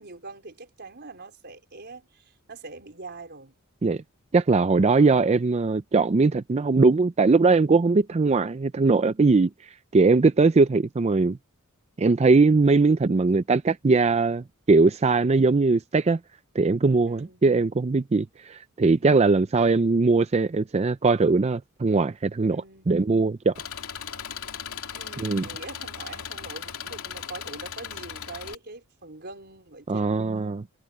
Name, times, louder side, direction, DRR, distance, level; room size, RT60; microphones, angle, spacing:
voice 1, 0.0-3.5 4.9-5.2 17.1-17.4 22.5-22.9 24.9-30.7, right 3 dB, 50° right, 4.2 m, -43 dB
voice 2, 4.3-9.5 9.9-11.4 12.0-16.2 16.6-23.5 25.2-25.5 29.9-30.6, right 3 dB, 30° right, 0.4 m, -20 dB
Engine, 23.6-28.6, left 8 dB, 85° left, 2.7 m, -37 dB
head